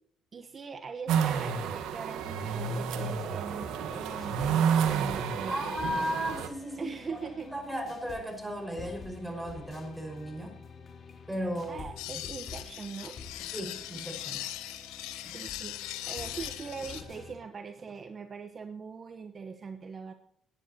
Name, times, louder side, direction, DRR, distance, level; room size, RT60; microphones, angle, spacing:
voice 1, 0.3-5.7 6.8-7.5 11.7-13.1 15.3-20.1, right 5 dB, 45° right, 7 dB, 1.1 m, -41 dB
sound 1, 1.1-6.5, right 7 dB, 80° right, 1.4 m, -30 dB
sound 2, 3.4-17.4, left 5 dB, 55° left, 3.5 m, -48 dB
voice 2, 5.5-10.5 11.3-11.8 12.2-12.3 13.5-14.5, equal, 5° right, 4 dB, 5.4 m, -35 dB
sound 3, 12.0-17.0, left 14 dB, 90° left, 1.1 m, -40 dB
18.0 x 10.5 x 2.9 m, 0.67 s
supercardioid pair, 70°, 0 cm